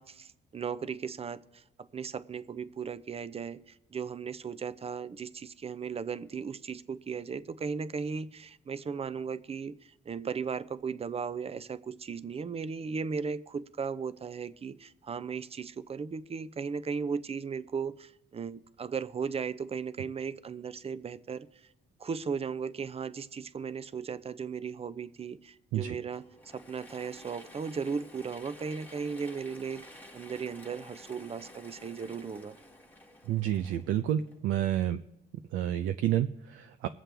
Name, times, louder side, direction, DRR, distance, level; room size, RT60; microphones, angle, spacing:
voice 1, 0.0-21.5 22.0-29.9 30.1-32.6, right 6 dB, 30° right, 0.6 m, -36 dB
Mechanisms / Drill, 26.1-34.7, left 1 dB, 10° left, 1.4 m, -52 dB
voice 2, 33.3-35.0 35.5-36.9, right 11 dB, 90° right, 0.5 m, -29 dB
22.0 x 7.5 x 3.4 m
cardioid pair, 90°, 20 cm